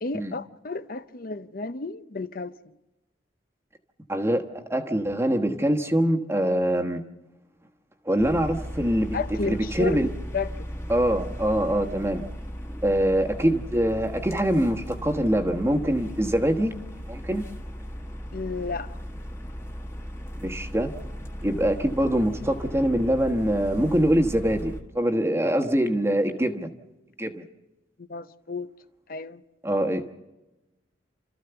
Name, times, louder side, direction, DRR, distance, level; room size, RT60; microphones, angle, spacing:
voice 1, 0.0-2.7 9.1-10.0 10.3-10.5 18.3-19.0 28.0-28.7 29.1-29.4, left 4 dB, 50° left, 0.7 m, -32 dB
voice 2, 4.1-7.0 8.0-9.2 9.4-10.1 10.9-12.2 12.8-16.7 17.1-17.4 20.4-20.9 21.4-26.7 27.2-27.4 29.6-30.1, right 1 dB, 15° right, 1.2 m, -24 dB
sound 1, 8.2-24.8, equal, 15° left, 1.5 m, -37 dB
30.0 x 14.0 x 6.9 m
head